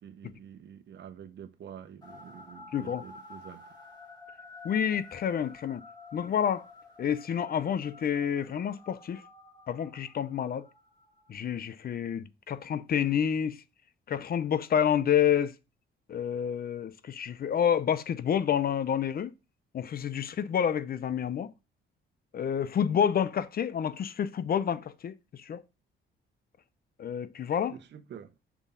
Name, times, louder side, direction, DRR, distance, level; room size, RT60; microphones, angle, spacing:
voice 1, 0.0-3.6 27.7-28.3, right 9 dB, 60° right, 1.1 m, -47 dB
sound 1, 2.0-11.5, left 3 dB, 20° left, 2.7 m, -51 dB
voice 2, 2.7-3.0 4.6-5.8 6.1-6.6 7.0-9.2 9.7-10.6 11.3-13.6 14.1-15.5 16.1-19.3 19.7-21.5 22.3-25.6 27.0-27.7, left 8 dB, 50° left, 0.7 m, -29 dB
6.1 x 3.6 x 5.5 m
cardioid pair, 90°, 20 cm